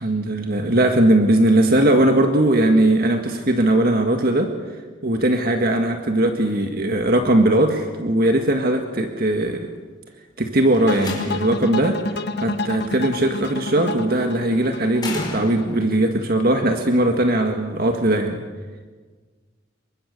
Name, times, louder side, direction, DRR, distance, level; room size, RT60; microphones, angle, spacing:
voice 1, 0.0-4.5 5.0-9.7 10.4-18.4, right 1 dB, 50° right, 4 dB, 1.8 m, -19 dB
Slam, 10.6-11.7 13.2-13.6 15.0-15.9, left 2 dB, 20° left, 4.9 m, -33 dB
sound 1, 10.9-16.0, left 2 dB, 55° left, 1.4 m, -29 dB
28.0 x 24.0 x 6.7 m, 1.4 s
head